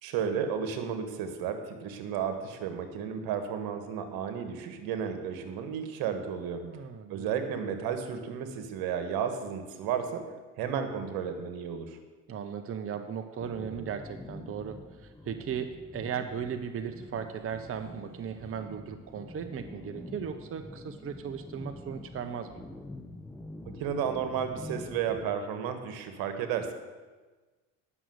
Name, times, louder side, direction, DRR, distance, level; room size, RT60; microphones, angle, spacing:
voice 1, 0.0-6.6 7.1-10.3 10.6-12.0 23.6-26.7, right 7 dB, 75° right, 7 dB, 1.5 m, -33 dB
voice 2, 6.6-7.3 12.3-22.6, right 7 dB, 35° right, 7 dB, 0.8 m, -37 dB
sound 1, 13.4-25.3, left 1 dB, 5° left, 0.8 m, -46 dB
9.9 x 6.4 x 7.8 m, 1.3 s
supercardioid pair, 85°, 36 cm